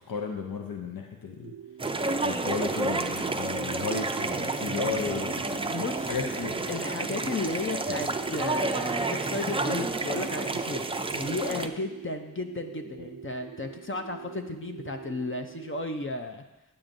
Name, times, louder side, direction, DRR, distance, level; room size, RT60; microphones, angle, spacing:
voice 1, 0.1-1.5 2.2-6.7 13.0-13.1, left 5 dB, 85° left, 2 dB, 0.7 m, -34 dB
sound 1, 1.4-15.9, right 9 dB, 75° right, 0.5 m, -45 dB
sound 2, 1.8-11.7, right 2 dB, 15° right, 0.4 m, -30 dB
voice 2, 5.7-6.2 6.7-10.9 11.1-16.4, left 2 dB, 35° left, 5 dB, 0.6 m, -34 dB
8.7 x 8.7 x 2.6 m, 1.0 s
wide cardioid pair, 55°, 34 cm